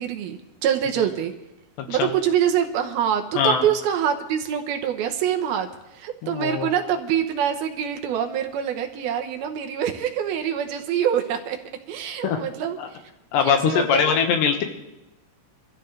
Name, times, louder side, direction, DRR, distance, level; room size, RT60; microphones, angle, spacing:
voice 1, 0.0-1.3 1.9-11.6 11.9-13.0 13.4-14.2, right 9 dB, 75° right, 4 dB, 2.7 m, -25 dB
voice 2, 1.8-2.1 3.4-3.7 6.2-6.7 12.2-12.4 12.8-12.9 13.3-14.6, left 7 dB, 90° left, 4 dB, 3.7 m, -22 dB
24.5 x 14.0 x 3.3 m, 0.95 s
omnidirectional pair, 4.8 m